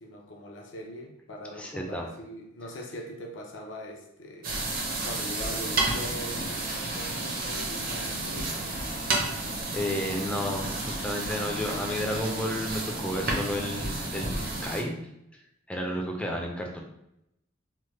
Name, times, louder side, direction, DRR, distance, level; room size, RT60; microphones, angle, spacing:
voice 1, 0.0-4.5 5.0-8.7, left 1 dB, 70° left, 0 dB, 0.6 m, -41 dB
voice 2, 1.5-2.1 4.8-4.9 9.7-15.0 15.7-16.8, equal, 5° left, 1 dB, 0.3 m, -32 dB
sound 1, 4.4-14.8, right 2 dB, 50° right, 0.6 m, -31 dB
3.1 x 2.1 x 3.1 m, 0.83 s
head